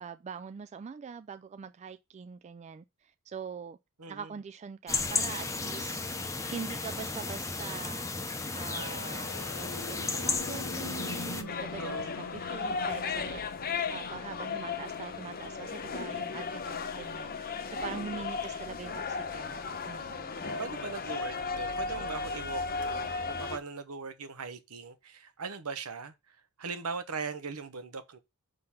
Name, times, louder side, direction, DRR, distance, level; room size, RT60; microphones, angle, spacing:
voice 1, 0.0-3.8 4.1-6.0 6.5-8.1 8.5-13.4 13.9-17.3 17.7-19.6 19.9-20.4, right 6 dB, 30° right, 0.3 m, -43 dB
voice 2, 4.0-4.3 11.8-12.3 20.6-28.2, right 5 dB, 75° right, 1.0 m, -40 dB
sound 1, 4.9-11.4, left 3 dB, 15° left, 0.8 m, -34 dB
sound 2, 8.2-20.0, left 4 dB, 75° left, 0.8 m, -46 dB
sound 3, 11.5-23.6, left 4 dB, 45° left, 0.9 m, -35 dB
6.4 x 3.9 x 5.7 m
head